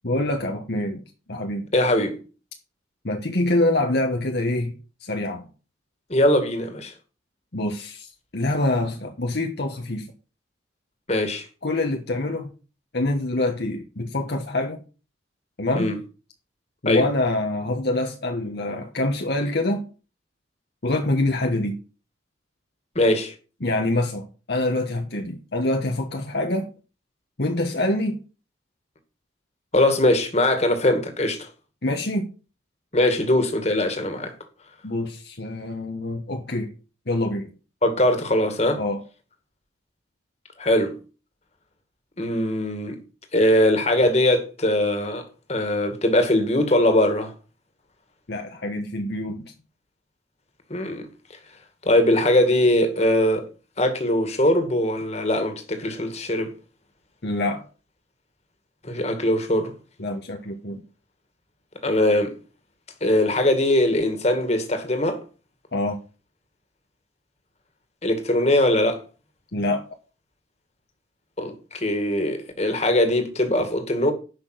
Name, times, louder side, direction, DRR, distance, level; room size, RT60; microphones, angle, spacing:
voice 1, 0.0-1.0 1.3-1.7 3.0-5.5 7.5-10.1 11.6-12.5 12.9-14.8 15.6-15.9 16.8-19.9 20.8-21.8 23.6-26.7 27.4-28.2 31.8-32.3 34.8-36.7 37.1-37.5 38.8-39.0 48.3-49.5 57.2-57.6 60.0-60.8 65.7-66.0 69.5-69.8, left 1 dB, 60° left, 1.3 m, -25 dB
voice 2, 1.7-2.2 6.1-6.9 11.1-11.5 15.8-16.0 16.9-17.0 23.0-23.3 29.7-31.5 32.9-34.3 37.8-38.8 40.6-41.0 42.2-43.0 43.3-47.3 50.7-51.1 51.8-53.5 53.8-56.5 58.8-59.7 61.8-62.4 63.0-65.2 68.0-69.0 71.4-74.1, left 1 dB, 35° left, 2.2 m, -21 dB
10.5 x 6.1 x 6.0 m
head